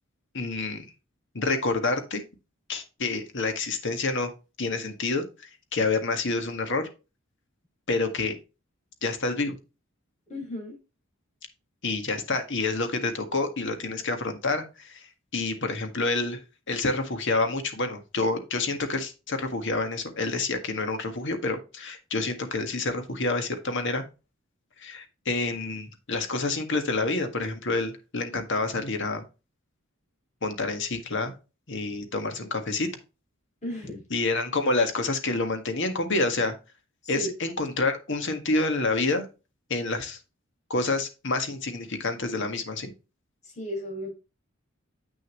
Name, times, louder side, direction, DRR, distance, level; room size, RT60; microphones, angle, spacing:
voice 1, 0.3-0.9 1.3-2.2 2.7-4.3 4.6-6.9 7.9-8.3 9.0-9.6 11.8-15.1 15.3-16.4 16.7-24.0 24.8-29.2 30.4-31.3 31.7-32.9 34.1-36.6 37.1-39.3 39.7-40.2 40.7-42.9, left 3 dB, 60° left, 6 dB, 1.7 m, -28 dB
voice 2, 10.3-10.8 33.6-34.0 37.0-37.3 43.4-44.1, equal, 35° left, 1 dB, 5.1 m, -34 dB
8.4 x 6.6 x 3.0 m, 0.29 s
head